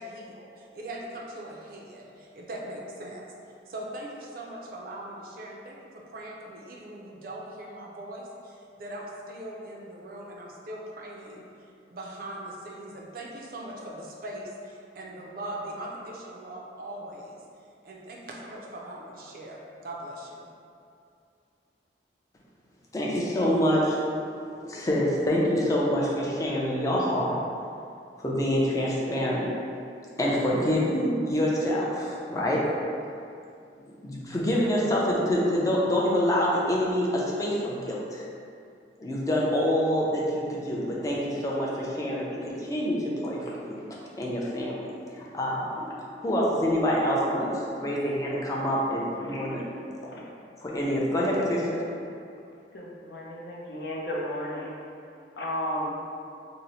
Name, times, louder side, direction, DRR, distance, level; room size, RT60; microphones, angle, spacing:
voice 1, 0.0-3.2 3.7-11.4 11.9-17.4 17.8-20.5, right 1 dB, 55° right, -2 dB, 0.4 m, -40 dB
voice 2, 22.9-24.0 24.6-27.3 28.2-29.5 30.2-32.7 34.0-38.2 39.0-43.8 44.2-44.9 45.3-45.9 46.2-49.6 50.6-51.8, equal, 20° left, -5 dB, 0.4 m, -26 dB
voice 3, 52.7-54.7 55.4-55.9, equal, 70° left, -4 dB, 0.6 m, -33 dB
2.8 x 2.0 x 4.0 m, 2.5 s
head